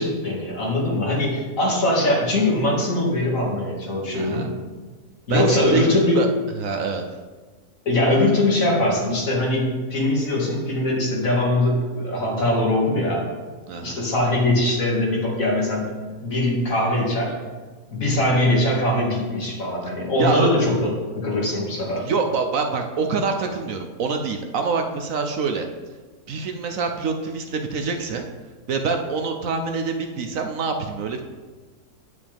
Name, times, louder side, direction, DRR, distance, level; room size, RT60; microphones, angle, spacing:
voice 1, 0.0-4.5 5.3-6.2 7.9-13.2 13.8-15.9 16.2-17.3 17.9-22.1, left 1 dB, 60° left, -3 dB, 2.6 m, -21 dB
voice 2, 4.1-4.5 5.3-5.8 6.1-6.3 6.6-7.0 13.7-14.0 20.2-20.5 22.0-25.7 26.3-28.2 28.7-31.2, right 4 dB, 65° right, 5 dB, 1.0 m, -25 dB
9.8 x 8.1 x 3.5 m, 1.4 s
omnidirectional pair, 1.7 m